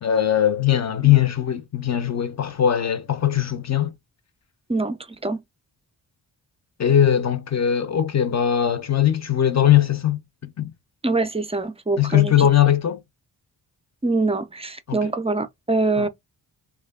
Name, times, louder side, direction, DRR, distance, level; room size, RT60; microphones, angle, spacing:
voice 1, 0.0-3.9 6.8-10.2 10.6-10.7 12.0-13.0 14.9-15.1 16.0-16.1, left 10 dB, 40° left, 0.7 m, -20 dB
voice 2, 4.7-5.4 11.0-12.5 14.0-16.1, right 3 dB, 15° right, 0.4 m, -24 dB
3.2 x 2.3 x 3.5 m
wide cardioid pair, 115°, 43 cm